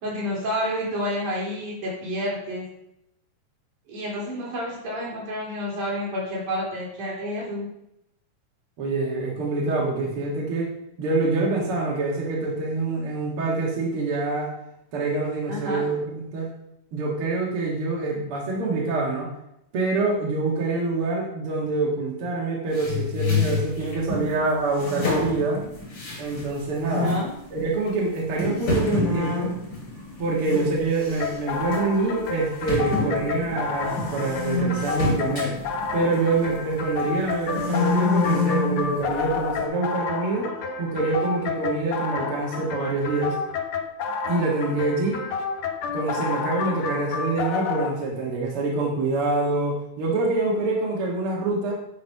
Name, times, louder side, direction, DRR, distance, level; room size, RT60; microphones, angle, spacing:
voice 1, 0.0-2.6 3.9-7.7 15.5-15.9 26.8-27.3, equal, 65° right, -5 dB, 4.9 m, -29 dB
voice 2, 8.8-10.7 11.0-14.5 14.9-16.5 16.9-19.3 19.7-25.6 26.2-27.1 27.5-29.5 30.2-35.6 35.9-40.5 40.8-43.4 44.3-45.2 45.9-51.7, right 3 dB, 50° right, -2 dB, 2.1 m, -25 dB
sound 1, 22.7-24.3 24.8-26.5 26.9-27.3 27.9-28.0 28.4-30.7 31.0-31.3 31.7-31.8 32.7-36.7 37.1-38.8, left 3 dB, 35° left, 3.8 m, -27 dB
sound 2, 31.2-47.9, left 5 dB, 80° left, 1.2 m, -30 dB
9.9 x 5.4 x 5.5 m, 0.81 s
omnidirectional pair, 3.8 m